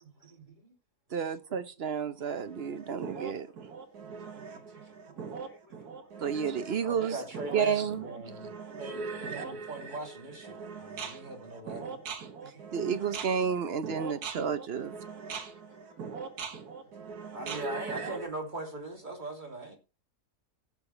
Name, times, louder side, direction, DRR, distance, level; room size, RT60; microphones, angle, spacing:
voice 1, 0.0-0.7 1.1-1.2 1.5-1.6 3.1-3.2 4.0-6.4 6.8-12.0 12.4-13.0 17.3-19.8, right 2 dB, 30° right, 3.0 m, -42 dB
voice 2, 1.1-3.5 6.2-7.2 7.5-8.3 12.7-14.9, right 7 dB, 50° right, 0.8 m, -31 dB
sound 1, 2.4-18.3, right 5 dB, 70° right, 1.9 m, -41 dB
voice 3, 14.8-16.4 16.7-16.9, left 1 dB, 55° left, 4.4 m, -62 dB
17.0 x 6.9 x 3.3 m
omnidirectional pair, 1.7 m